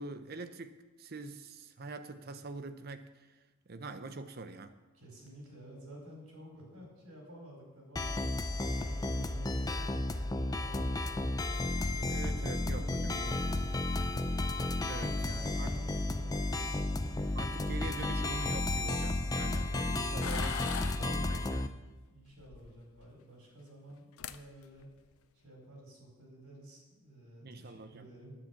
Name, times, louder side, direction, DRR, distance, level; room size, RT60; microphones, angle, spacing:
voice 1, 0.0-3.4 3.7-4.8 12.1-13.4 14.9-15.8 17.3-21.8 27.4-28.1, right 3 dB, 45° right, 10 dB, 0.7 m, -44 dB
voice 2, 4.9-8.3 8.8-11.2 11.9-14.2 14.8-17.1 22.1-24.9 25.4-28.4, equal, 90° right, -1 dB, 4.3 m, -52 dB
sound 1, 8.0-21.7, left 2 dB, 15° left, 0.4 m, -33 dB
Zipper (clothing), 12.6-19.9, equal, 55° left, 2.5 m, -57 dB
sound 2, 20.2-21.1 22.4-23.1 23.9-24.0 24.2-24.4 24.8-25.1, left 8 dB, 85° left, 0.5 m, -40 dB
9.9 x 7.5 x 8.3 m, 1.2 s
head